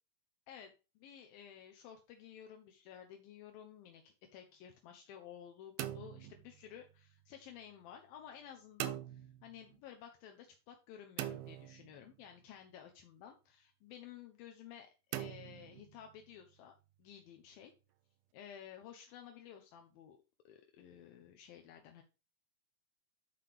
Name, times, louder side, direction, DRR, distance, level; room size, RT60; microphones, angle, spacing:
voice 1, 0.5-16.7 17.0-17.7 18.3-20.2 20.5-22.0, left 9 dB, 80° left, 4 dB, 2.5 m, -54 dB
sound 1, 5.8-7.1 8.8-9.8 11.2-12.4 15.1-16.3, right 13 dB, 80° right, 2.5 m, -43 dB
9.2 x 5.9 x 3.4 m, 0.31 s
omnidirectional pair, 4.3 m